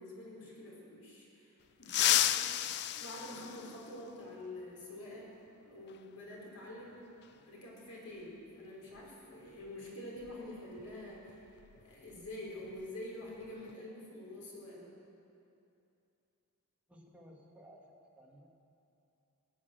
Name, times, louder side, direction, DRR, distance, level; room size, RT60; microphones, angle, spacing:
voice 1, 0.0-1.5 1.8-2.6 2.9-5.3 5.6-7.0 7.4-11.6 11.8-14.9, left 1 dB, 80° left, -4 dB, 4.7 m, -47 dB
sound 1, 1.8-4.2 5.9-6.0 7.2-7.3 8.9-9.1 9.5-9.7 10.2-12.3 12.6-12.9 13.3-13.7, left 12 dB, 50° left, 0.4 m, -33 dB
voice 2, 16.9-18.5, equal, 5° right, -2 dB, 1.8 m, -57 dB
18.5 x 8.8 x 8.1 m, 2.8 s
head